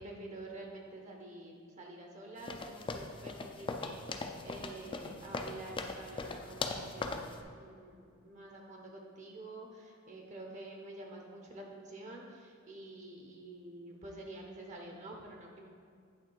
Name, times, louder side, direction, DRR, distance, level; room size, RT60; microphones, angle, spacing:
voice 1, 0.0-15.7, right 2 dB, 35° right, 1 dB, 0.7 m, -48 dB
sound 1, 2.4-7.4, left 3 dB, 25° left, 0.4 m, -40 dB
8.6 x 3.7 x 4.7 m, 2.2 s
head